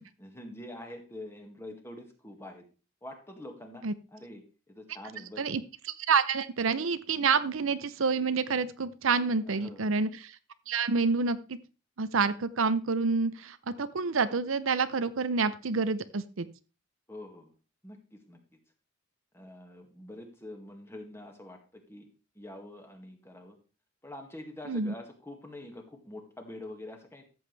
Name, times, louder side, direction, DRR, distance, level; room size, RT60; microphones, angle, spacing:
voice 1, 0.2-2.6 3.0-5.6 9.5-10.0 17.1-17.5 17.8-18.4 19.3-22.1 22.4-23.6 24.0-27.2, left 1 dB, 15° left, 3 dB, 1.9 m, -45 dB
voice 2, 6.0-10.4 10.7-11.6 12.0-16.5 24.7-24.9, right 4 dB, 85° right, 13 dB, 0.7 m, -28 dB
13.5 x 7.9 x 3.4 m, 0.33 s
head